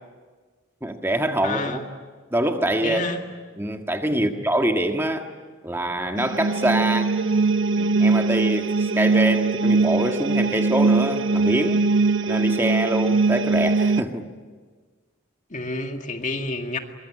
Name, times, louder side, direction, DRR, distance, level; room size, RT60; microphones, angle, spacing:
voice 1, 0.8-1.8 2.3-3.0 3.6-5.3 5.6-7.1 7.7-11.9 12.3-14.2, right 1 dB, 10° right, 4 dB, 1.7 m, -25 dB
voice 2, 1.4-1.9 2.8-3.2 4.1-4.3 15.5-16.8, left 2 dB, 40° left, 4 dB, 2.0 m, -29 dB
sound 1, 6.2-14.0, right 3 dB, 70° right, 0.8 m, -21 dB
23.5 x 23.5 x 9.9 m, 1.4 s
head